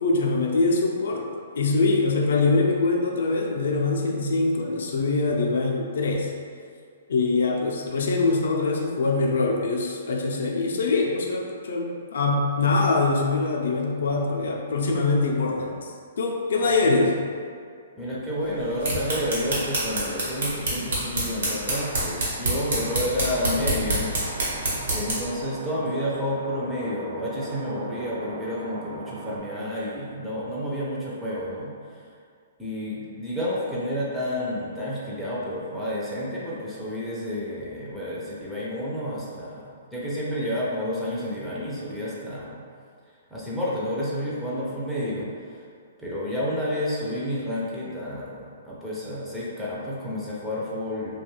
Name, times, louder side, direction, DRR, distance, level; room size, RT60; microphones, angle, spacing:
voice 1, 0.0-1.2 1.6-6.3 7.1-15.9 16.2-17.2, left 3 dB, 70° left, 0 dB, 0.4 m, -23 dB
voice 2, 16.6-17.1 18.0-24.1 24.7-32.0 32.6-42.6 43.3-45.6 46.0-51.2, left 1 dB, 5° right, -8 dB, 0.4 m, -30 dB
sound 1, 18.6-25.3, right 1 dB, 70° right, 0.9 m, -28 dB
sound 2, 23.4-29.4, right 2 dB, 90° right, 0.5 m, -39 dB
2.4 x 2.2 x 3.0 m, 2.2 s
hypercardioid pair, 165°, 0 cm